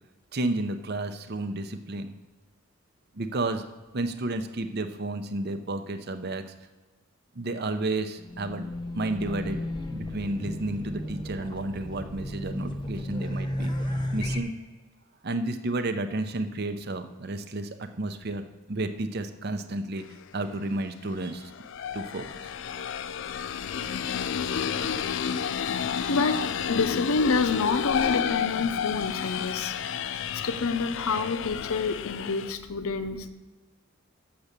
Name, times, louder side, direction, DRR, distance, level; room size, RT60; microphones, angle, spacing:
voice 1, 0.3-2.1 3.2-3.6 3.9-6.4 7.4-8.6 8.9-9.6 9.9-13.7 14.1-14.5 15.2-20.0 20.3-21.5 21.9-22.2, right 2 dB, 50° right, 9 dB, 0.6 m, -31 dB
Race car auto racing / Alarm, 8.2-14.4, left 1 dB, 20° left, 0.8 m, -33 dB
sound 1, 20.1-20.2 21.2-32.5, left 7 dB, 60° left, 0.4 m, -31 dB
voice 2, 26.1-33.3, left 4 dB, 85° left, 11 dB, 0.7 m, -28 dB
7.2 x 6.9 x 6.7 m, 1.2 s
head